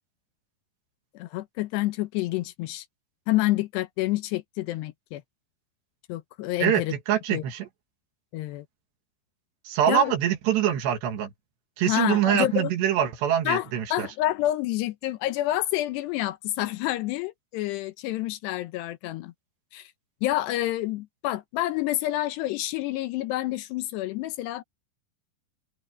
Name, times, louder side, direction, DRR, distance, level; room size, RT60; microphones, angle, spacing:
voice 1, 1.1-2.9 3.3-5.2 6.1-6.9 7.3-7.4 8.3-8.7 9.9-10.1 11.9-12.7 13.5-19.3 19.7-19.9 20.2-24.6, left 16 dB, 75° left, 2.9 m, -28 dB
voice 2, 6.6-7.7 9.7-11.3 11.8-14.1, right 10 dB, 75° right, 4.0 m, -24 dB
open air
omnidirectional pair, 5.1 m